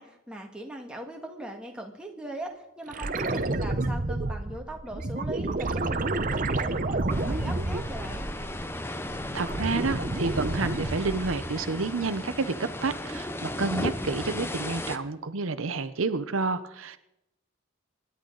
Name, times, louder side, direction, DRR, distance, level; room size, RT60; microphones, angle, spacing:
voice 1, 0.0-8.3, right 1 dB, 5° right, 1 dB, 1.7 m, -40 dB
sound 1, 2.9-8.7 9.1-11.6 14.0-14.1, right 2 dB, 40° right, 0.8 m, -30 dB
sound 2, 7.1-15.0, left 1 dB, 10° left, 0.6 m, -35 dB
voice 2, 9.3-17.1, right 3 dB, 80° right, 11 dB, 0.8 m, -30 dB
26.0 x 10.5 x 3.9 m, 0.87 s
head